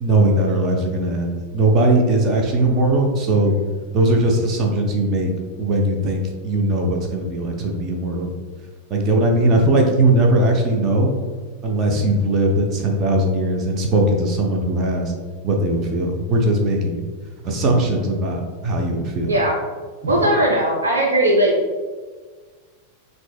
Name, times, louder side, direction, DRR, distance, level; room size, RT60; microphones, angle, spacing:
voice 1, 0.0-3.6 3.9-5.3 5.6-8.3 8.9-11.1 11.6-15.1 15.4-17.0 17.4-19.3 20.0-20.1, right 1 dB, 30° right, 1 dB, 0.7 m, -19 dB
voice 2, 19.2-19.6 20.1-21.5, right 1 dB, 75° right, -2 dB, 0.5 m, -18 dB
5.9 x 2.6 x 2.3 m, 1.5 s
figure-of-eight pair, 90°, 0 cm